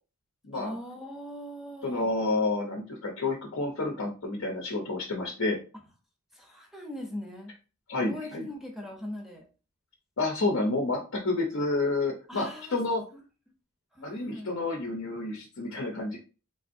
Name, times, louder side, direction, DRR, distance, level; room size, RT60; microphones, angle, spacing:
voice 1, 0.5-2.1 6.3-7.5 8.0-9.4 12.3-12.8 13.1-13.2 13.9-14.5, left 1 dB, ahead, 1 dB, 0.6 m, -40 dB
voice 2, 1.8-5.6 7.9-8.5 10.2-11.0 11.2-13.0 14.0-16.2, left 2 dB, 65° left, 0 dB, 0.7 m, -29 dB
3.5 x 2.5 x 2.6 m, 0.34 s
head